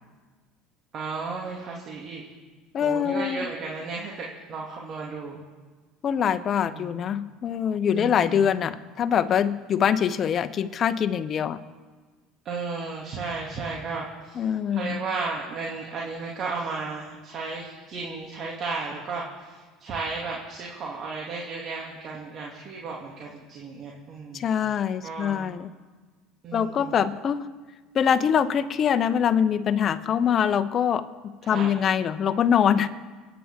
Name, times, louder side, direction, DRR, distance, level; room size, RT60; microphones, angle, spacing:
voice 1, 0.9-2.2 2.8-5.4 6.6-7.0 7.9-8.5 12.4-24.7 25.0-25.5 26.4-27.0 31.4-31.8, right 4 dB, 45° right, -3 dB, 2.7 m, -34 dB
voice 2, 2.7-3.5 6.0-11.6 14.4-15.0 24.3-25.7 26.5-27.4 27.9-31.1 31.5-32.9, left 8 dB, 45° left, 11 dB, 0.9 m, -24 dB
28.5 x 9.8 x 3.8 m, 1.4 s
hypercardioid pair, 75°, 0 cm